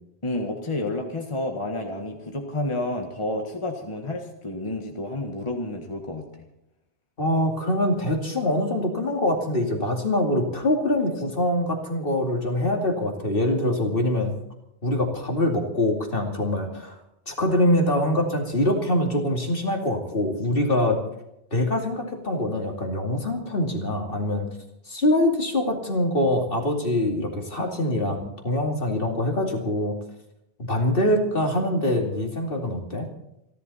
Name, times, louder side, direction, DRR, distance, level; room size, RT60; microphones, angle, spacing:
voice 1, 0.2-6.2, left 2 dB, 30° left, 2 dB, 1.7 m, -30 dB
voice 2, 7.2-14.3 14.8-17.0 17.3-21.0 21.5-24.5 24.9-29.9 30.7-33.1, left 1 dB, 55° left, 2 dB, 2.7 m, -24 dB
28.0 x 11.0 x 4.2 m, 0.83 s
omnidirectional pair, 1.1 m